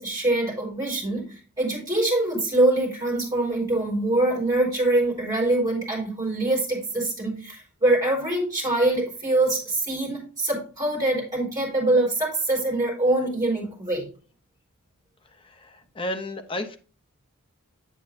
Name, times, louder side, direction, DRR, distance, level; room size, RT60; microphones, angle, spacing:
voice 1, 0.0-14.1, right 2 dB, 15° right, -4 dB, 4.0 m, -24 dB
voice 2, 15.4-16.8, left 1 dB, 25° left, 8 dB, 0.6 m, -32 dB
7.6 x 7.4 x 2.5 m, 0.39 s
head